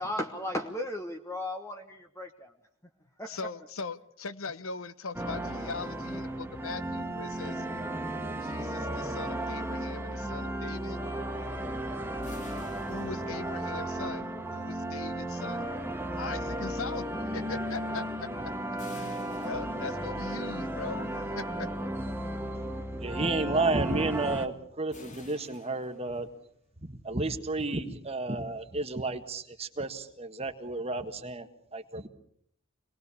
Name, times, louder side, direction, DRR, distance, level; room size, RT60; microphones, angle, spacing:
voice 1, 0.0-2.5 3.2-3.4, left 1 dB, 15° left, 4 dB, 1.3 m, -35 dB
voice 2, 3.2-7.7 8.4-11.0 12.9-15.7 16.2-18.3 18.9-21.9, left 4 dB, 70° left, 15 dB, 1.0 m, -40 dB
sound 1, 5.1-24.5, right 1 dB, 10° right, 1.4 m, -35 dB
sound 2, 12.2-14.1 18.8-20.4 24.9-26.6, left 3 dB, 35° left, 2.1 m, -52 dB
voice 3, 22.9-26.3 26.8-32.1, right 2 dB, 30° right, 8 dB, 1.6 m, -32 dB
26.0 x 20.0 x 7.1 m, 0.68 s
head